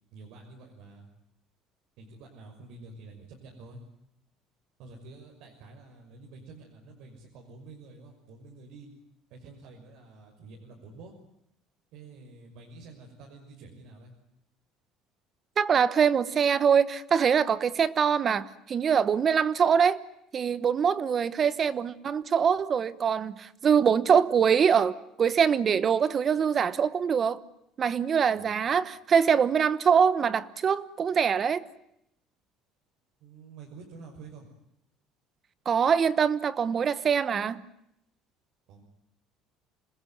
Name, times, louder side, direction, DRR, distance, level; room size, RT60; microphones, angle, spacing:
voice 1, 0.1-1.1 2.0-3.8 4.8-8.9 9.3-11.1 11.9-14.1 28.4-28.7 33.2-34.5 38.7-38.8, right 3 dB, 65° right, 6.2 m, -48 dB
voice 2, 15.6-20.0 20.3-27.4 27.8-31.6 35.6-37.6, right 7 dB, 30° right, 1.1 m, -24 dB
27.5 x 20.5 x 9.4 m
cardioid pair, 150°, 0 cm